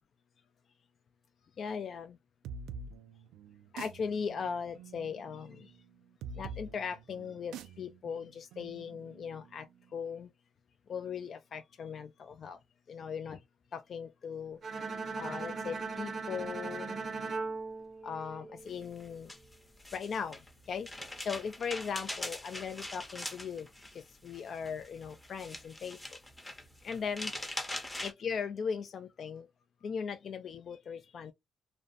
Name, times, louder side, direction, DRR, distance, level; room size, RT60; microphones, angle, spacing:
voice 1, 1.6-2.2 3.7-5.7 6.3-10.3 10.9-12.6 12.9-13.4 13.7-14.6 15.2-17.0 18.0-19.3 19.9-26.0 26.8-27.3 28.0-29.5 29.8-31.3, left 6 dB, 55° left, 0.3 m, -39 dB
sound 1, 2.4-9.8, right 5 dB, 90° right, 0.3 m, -47 dB
Bowed string instrument, 14.6-18.8, right 4 dB, 50° right, 0.6 m, -39 dB
sound 2, 18.7-28.1, left 1 dB, 15° left, 0.6 m, -43 dB
2.5 x 2.1 x 2.5 m
cardioid pair, 90°, 0 cm